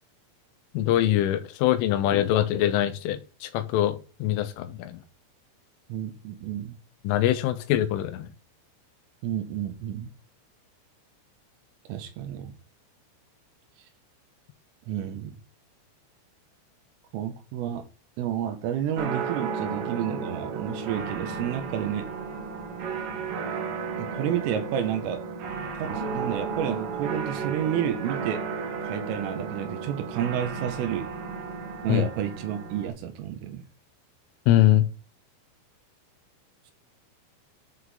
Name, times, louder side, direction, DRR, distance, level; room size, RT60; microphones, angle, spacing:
voice 1, 0.7-5.0 7.0-8.3 31.9-32.0 34.5-34.8, left 13 dB, 80° left, 3.3 m, -23 dB
voice 2, 5.9-6.8 9.2-10.1 11.9-12.5 14.9-15.4 17.1-17.8 18.2-22.1 24.0-25.2 25.8-28.4 28.9-31.1 31.8-33.6, right 10 dB, 90° right, 3.9 m, -30 dB
sound 1, 19.0-32.9, right 5 dB, 60° right, 2.7 m, -33 dB
11.0 x 6.2 x 3.8 m
omnidirectional pair, 5.8 m